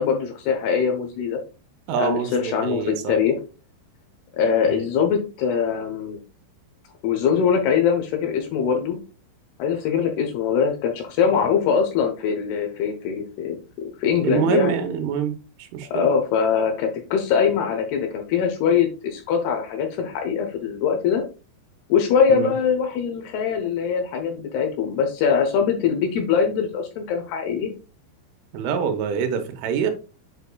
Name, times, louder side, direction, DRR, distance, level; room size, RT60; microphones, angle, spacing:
voice 1, 0.0-1.4 2.0-3.4 4.3-6.2 7.0-9.0 9.6-13.6 14.0-14.8 15.9-21.2 21.9-27.7, left 7 dB, 75° left, 2.5 m, -22 dB
voice 2, 1.9-3.1 4.6-4.8 14.2-16.1 22.3-22.5 28.5-29.9, right 7 dB, 85° right, 3.5 m, -25 dB
8.1 x 5.8 x 2.2 m
omnidirectional pair, 5.4 m